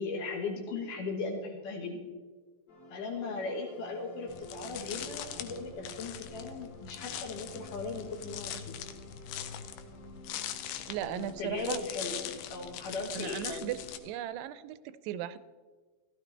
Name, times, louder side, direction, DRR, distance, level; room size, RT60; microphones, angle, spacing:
voice 1, 0.0-2.1 2.9-8.7 10.9-13.7, left 3 dB, 65° left, 1 dB, 2.5 m, -38 dB
sound 1, 2.7-14.2, left 1 dB, 40° left, 2.7 m, -53 dB
sound 2, 4.3-14.0, left 10 dB, 80° left, 2.7 m, -42 dB
voice 2, 10.9-11.8 13.2-15.4, right 11 dB, 85° right, 14 dB, 2.6 m, -37 dB
16.0 x 13.0 x 3.3 m, 1.4 s
omnidirectional pair, 4.8 m